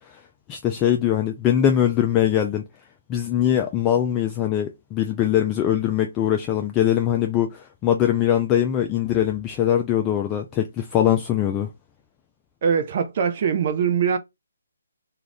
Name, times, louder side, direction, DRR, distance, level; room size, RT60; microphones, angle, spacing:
voice 1, 0.5-2.7 3.1-11.7, left 10 dB, 20° left, 0.3 m, -22 dB
voice 2, 12.6-14.2, right 7 dB, 40° right, 0.5 m, -22 dB
2.4 x 2.4 x 3.3 m
figure-of-eight pair, 145°, 0 cm